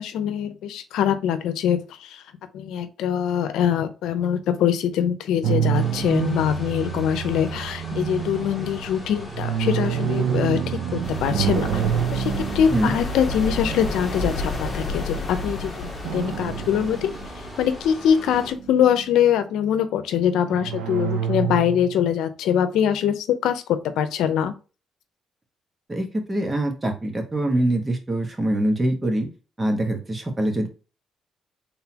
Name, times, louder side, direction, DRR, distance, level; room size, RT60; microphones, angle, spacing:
voice 1, 0.0-2.2 2.5-10.6 10.9-11.8 12.1-17.2 17.6-23.6 24.0-24.5, left 9 dB, 85° left, 10 dB, 0.7 m, -23 dB
sound 1, 5.4-14.8 16.0-17.6 18.0-19.1 20.5-22.1, right 9 dB, 80° right, 0.5 m, -28 dB
sound 2, 5.7-18.5, left 1 dB, 15° left, 2.0 m, -40 dB
sound 3, 11.0-18.6, left 2 dB, 35° left, 1.4 m, -31 dB
voice 2, 25.9-29.3 29.6-30.7, right 1 dB, 20° right, 4 dB, 1.4 m, -24 dB
4.0 x 3.7 x 2.9 m, 0.33 s
cardioid pair, 90°, 0 cm